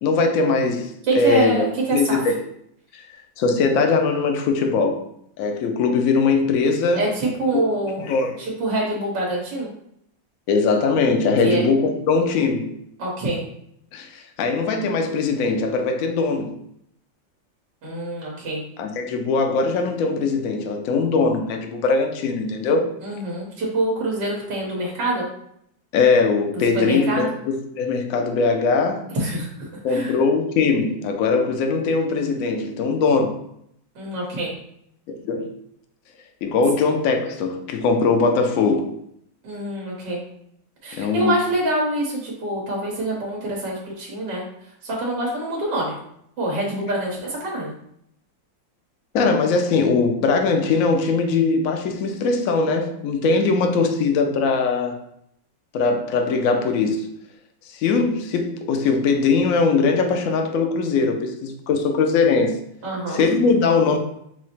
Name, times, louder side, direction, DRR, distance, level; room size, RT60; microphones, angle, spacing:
voice 1, 0.0-1.6 1.9-2.3 2.9-3.0 3.4-5.1 5.4-7.1 7.5-7.6 8.0-8.4 10.5-12.8 13.9-16.6 18.8-22.9 25.9-29.0 29.8-33.4 35.2-35.5 36.4-38.9 40.9-41.4 49.1-55.0 55.7-57.1 57.7-62.6 63.1-64.0, left 4 dB, 85° left, 0.7 m, -21 dB
voice 2, 1.1-2.2 6.9-8.1 8.4-9.7 11.4-11.6 13.0-13.4 17.8-18.6 23.0-25.3 26.7-27.4 29.1-30.1 34.0-34.5 39.4-40.2 40.8-44.4 44.8-46.0 46.4-47.7 62.8-63.2, right 1 dB, 70° right, 1.7 m, -25 dB
4.5 x 2.0 x 4.2 m
omnidirectional pair, 2.0 m